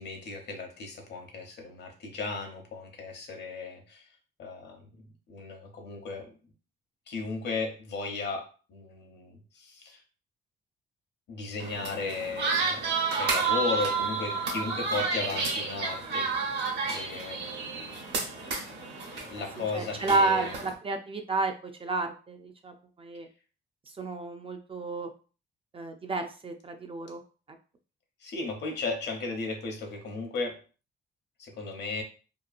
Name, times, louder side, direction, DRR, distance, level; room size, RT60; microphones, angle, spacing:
voice 1, 0.0-4.0 4.4-4.8 5.3-6.3 7.1-10.0 11.3-12.8 13.2-16.6 16.9-17.8 19.3-20.6 28.2-30.6 31.4-32.0, left 3 dB, 60° left, 3 dB, 0.8 m, -35 dB
sound 1, 11.6-20.7, right 4 dB, 60° right, 0.9 m, -31 dB
voice 2, 19.7-21.5 21.8-23.3 24.0-25.1 25.7-27.2, right 3 dB, 30° right, 5 dB, 0.4 m, -30 dB
2.9 x 2.2 x 2.5 m, 0.37 s
cardioid pair, 90°, 20 cm